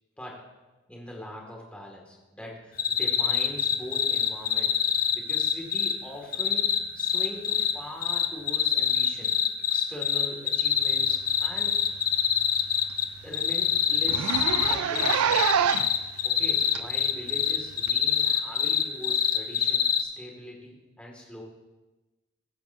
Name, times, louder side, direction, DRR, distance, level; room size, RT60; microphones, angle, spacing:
voice 1, 0.9-4.8 5.1-6.7 7.0-9.3 9.7-11.8 13.2-15.4 16.2-21.4, left 1 dB, 5° left, -1 dB, 2.2 m, -42 dB
sound 1, 2.8-5.9 6.3-7.7 8.0-13.0 13.3-20.0, left 9 dB, 40° left, 0.7 m, -24 dB
Zipper (clothing), 11.4-11.6 11.9-12.0 12.4-12.5 12.9-13.0 13.2-13.4 14.0-16.0 16.7-16.8 17.9-18.0, right 7 dB, 80° right, 0.5 m, -26 dB
21.5 x 10.0 x 2.8 m, 1.1 s
head